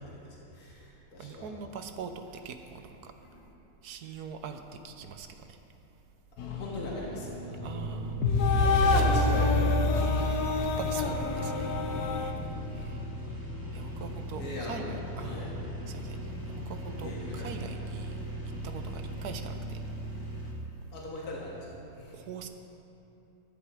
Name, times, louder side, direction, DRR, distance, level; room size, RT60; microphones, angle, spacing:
voice 1, 0.0-1.5 3.2-3.4 6.4-7.9 8.6-10.8 14.4-15.5 17.0-17.5 20.9-21.7 21.9-22.1, left 1 dB, 70° left, -5 dB, 2.5 m, -40 dB
voice 2, 1.2-3.1 3.8-5.6 7.6-8.2 8.9-9.1 10.0-11.7 12.7-13.0 13.7-15.5 15.9-18.2 18.6-19.8 22.1-22.5, right 6 dB, 80° right, 7 dB, 1.3 m, -42 dB
sound 1, 6.4-12.3, left 3 dB, 90° left, 1.5 m, -27 dB
sound 2, 7.6-20.5, right 2 dB, 15° right, 2.0 m, -37 dB
14.5 x 10.5 x 4.9 m, 2.8 s
omnidirectional pair, 1.6 m